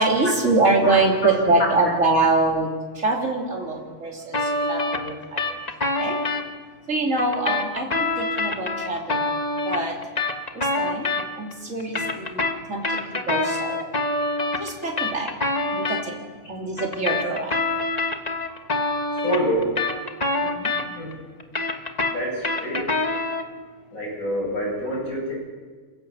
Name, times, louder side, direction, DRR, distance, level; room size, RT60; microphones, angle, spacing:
voice 1, 0.0-5.4 6.0-6.2 6.9-9.3 9.6-10.0 10.5-12.4 12.7-13.8 14.6-15.3 15.7-16.1 16.5-17.6 20.4-20.7, right 2 dB, 60° right, -1 dB, 3.6 m, -24 dB
sound 1, 4.3-6.4 7.2-11.5 11.8-16.0 16.8-21.1 21.4-23.5, left 2 dB, 30° left, 1.5 m, -26 dB
voice 2, 19.2-19.8 21.0-21.1 22.1-22.9 23.9-25.3, equal, 80° left, -2 dB, 8.4 m, -26 dB
29.0 x 16.0 x 7.1 m, 1.5 s
omnidirectional pair, 1.5 m